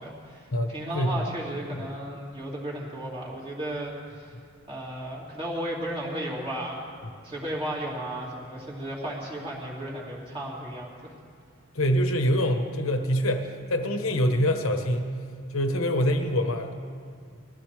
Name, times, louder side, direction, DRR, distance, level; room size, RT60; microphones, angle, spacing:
voice 1, 0.0-4.3 4.7-6.9 7.2-11.1, right 1 dB, 25° right, -5 dB, 2.8 m, -34 dB
voice 2, 0.5-1.3 1.7-1.9 11.7-15.2 15.5-16.7, equal, 80° left, 5 dB, 1.1 m, -25 dB
21.0 x 15.0 x 3.3 m, 2.3 s
head